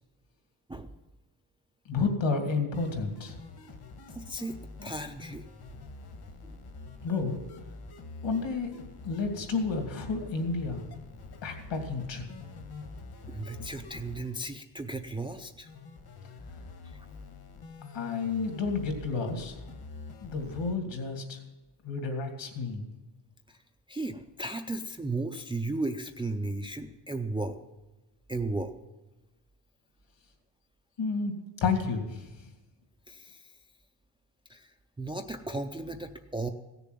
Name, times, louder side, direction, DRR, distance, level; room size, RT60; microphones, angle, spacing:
voice 1, 1.9-3.3 7.0-7.4 8.2-8.8 9.0-10.8 11.4-12.3 17.9-19.6 20.2-21.4 21.8-22.8 31.0-31.3 31.6-32.3, left 4 dB, 65° left, 4 dB, 2.7 m, -31 dB
sound 1, 2.7-20.7, left 3 dB, 50° left, 1.6 m, -46 dB
voice 2, 4.1-5.5 6.4-6.6 13.3-15.7 16.8-17.1 23.5-23.6 23.9-27.6 28.3-28.7 33.1-33.6 34.5-36.5, right 2 dB, 10° right, 6 dB, 0.4 m, -35 dB
16.5 x 6.9 x 9.2 m, 1.1 s
wide cardioid pair, 165°, 47 cm